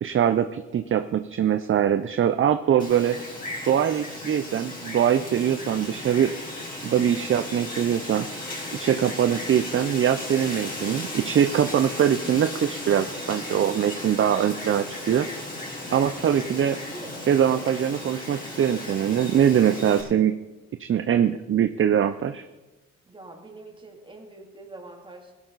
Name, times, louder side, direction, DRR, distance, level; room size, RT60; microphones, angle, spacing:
voice 1, 0.0-3.2 3.6-6.3 6.8-8.3 8.7-15.3 15.9-16.8 17.3-20.3 20.8-22.4, right 9 dB, 45° right, 9 dB, 0.6 m, -22 dB
Wind, 2.8-20.0, left 1 dB, 25° left, 4.1 m, -36 dB
voice 2, 16.7-17.7 23.0-25.3, right 2 dB, 15° right, 1 dB, 2.8 m, -44 dB
16.5 x 12.0 x 4.1 m, 1.1 s
cardioid pair, 90°, 30 cm